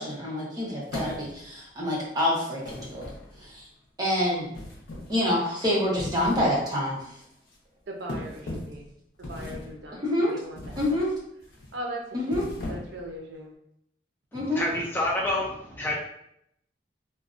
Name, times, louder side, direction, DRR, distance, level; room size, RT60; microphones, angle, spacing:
voice 1, 0.0-3.0 3.4-3.7 4.0-4.5 5.1-7.0 9.9-10.3 10.8-11.1 12.1-12.4 14.3-14.7, left 1 dB, 20° right, -5 dB, 0.7 m, -27 dB
sound 1, 0.9-1.6 2.6-3.6 4.5-5.2 5.8-6.6 7.0-7.2 8.1-8.8 9.2-9.8 10.6-11.0 11.4-11.7 12.2-13.1, left 1 dB, 75° left, 0.5 m, -37 dB
voice 2, 7.9-8.9 9.2-10.0 10.3-10.9 11.7-13.5, right 1 dB, 75° right, 1 dB, 0.5 m, -39 dB
voice 3, 14.6-15.9, left 1 dB, 10° left, -2 dB, 0.4 m, -28 dB
2.5 x 2.1 x 2.4 m, 0.75 s
head